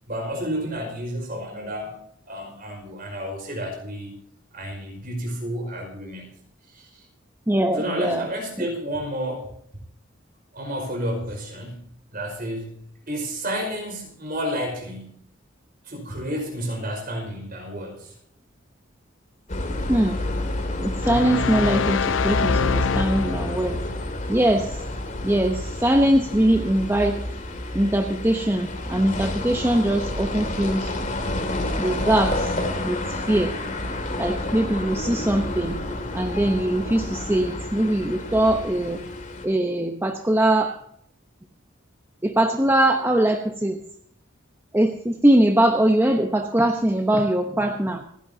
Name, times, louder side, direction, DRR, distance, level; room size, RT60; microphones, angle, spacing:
voice 1, 0.1-2.0 2.2-4.1 4.5-6.4 6.7-7.1 7.7-9.5 10.5-11.9 12.1-15.2 15.8-18.1, equal, 45° right, 2 dB, 5.3 m, -31 dB
voice 2, 7.5-8.3 19.9-20.2 20.8-23.8 24.3-24.8 25.2-27.2 27.7-30.9 31.8-32.6 32.8-33.5 34.2-35.8 36.1-39.0 39.4-40.7 42.2-43.8 44.7-48.0, right 1 dB, 10° right, 4 dB, 0.9 m, -21 dB
sound 1, 19.5-39.4, left 1 dB, 40° left, 2.4 m, -30 dB
sound 2, 21.0-23.8, left 5 dB, 70° left, 0.5 m, -24 dB
26.5 x 11.0 x 2.8 m, 0.70 s
head